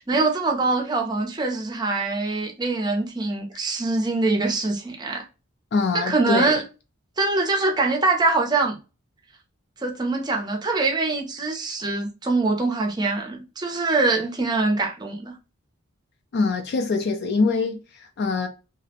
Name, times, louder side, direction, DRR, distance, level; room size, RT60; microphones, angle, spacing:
voice 1, 0.0-5.2 5.9-6.6 7.2-8.8 9.8-15.3, right 3 dB, 20° right, 0.5 m, -23 dB
voice 2, 5.7-6.6 16.3-18.5, left 4 dB, 50° left, 0.3 m, -24 dB
2.4 x 2.0 x 2.7 m
head